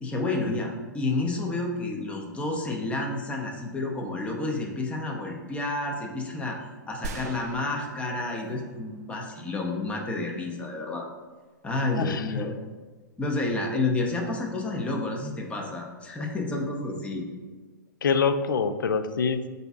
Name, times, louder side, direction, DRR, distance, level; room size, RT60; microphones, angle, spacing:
voice 1, 0.0-11.1 11.6-12.5 13.2-17.3, left 2 dB, 10° left, 0 dB, 0.7 m, -30 dB
sound 1, 7.0-9.9, right 4 dB, 55° right, 0.5 m, -42 dB
voice 2, 12.0-12.4 18.0-19.5, left 5 dB, 80° left, 10 dB, 0.4 m, -25 dB
7.8 x 2.7 x 2.4 m, 1.4 s
hypercardioid pair, 125°, 11 cm